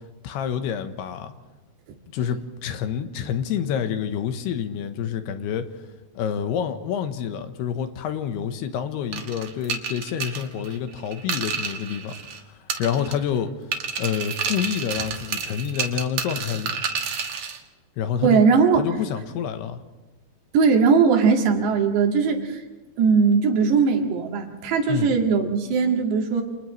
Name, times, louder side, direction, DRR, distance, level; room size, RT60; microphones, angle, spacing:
voice 1, 0.2-1.3 2.1-5.7 6.2-12.1 12.5-13.5 14.0-16.8 18.0-18.4 18.7-19.8 24.9-25.1, left 8 dB, 75° left, 8 dB, 3.0 m, -28 dB
sound 1, 9.1-12.4 12.7-13.4 13.7-17.6, right 6 dB, 55° right, 2.1 m, -30 dB
voice 2, 18.2-18.8 20.5-22.6 23.0-26.4, right 5 dB, 80° right, 2 dB, 4.3 m, -19 dB
29.0 x 28.0 x 3.2 m, 1.2 s
omnidirectional pair, 4.9 m